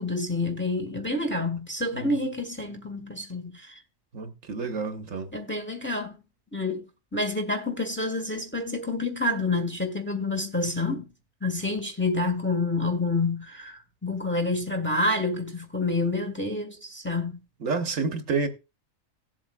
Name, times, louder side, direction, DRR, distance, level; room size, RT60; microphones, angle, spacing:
voice 1, 0.0-3.8 5.3-6.2 6.5-6.8 7.1-11.1 11.4-17.4, left 2 dB, 10° left, 1.2 m, -28 dB
voice 2, 4.1-5.3 17.6-18.5, right 4 dB, 75° right, 1.5 m, -29 dB
17.5 x 7.6 x 2.3 m
omnidirectional pair, 1.4 m